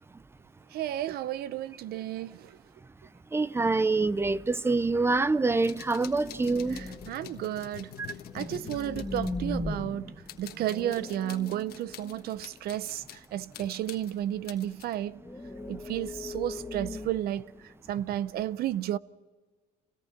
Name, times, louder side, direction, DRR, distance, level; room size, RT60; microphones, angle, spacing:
voice 1, 0.7-2.6 6.7-7.9 8.3-10.1 10.4-15.2 15.7-17.4 17.9-19.0, right 12 dB, 70° right, 0.6 m, -32 dB
voice 2, 3.3-6.8 8.0-8.1, right 3 dB, 15° right, 0.6 m, -26 dB
sound 1, 4.4-4.6 4.9-5.0 5.7-7.3 7.9-12.7 14.2-14.6 14.9-18.0, left 2 dB, 10° left, 1.9 m, -39 dB
sound 2, 5.6-10.0 10.3-13.3 13.5-15.0, left 11 dB, 65° left, 1.4 m, -46 dB
26.5 x 17.5 x 5.9 m
cardioid pair, 110°, 17 cm